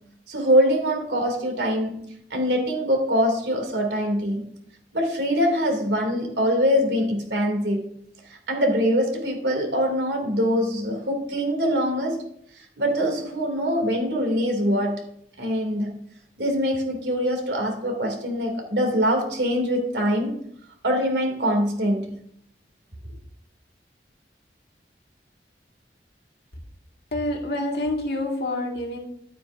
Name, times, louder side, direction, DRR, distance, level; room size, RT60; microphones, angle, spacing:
voice 1, 0.3-1.9 2.3-4.5 4.9-7.9 8.5-12.2 12.8-15.0 15.4-15.9 16.4-20.3 20.8-22.1, equal, 80° right, 2.8 m, -23 dB
voice 2, 27.1-29.0, left 1 dB, 65° left, 2.0 m, -27 dB
12.0 x 9.2 x 2.7 m
head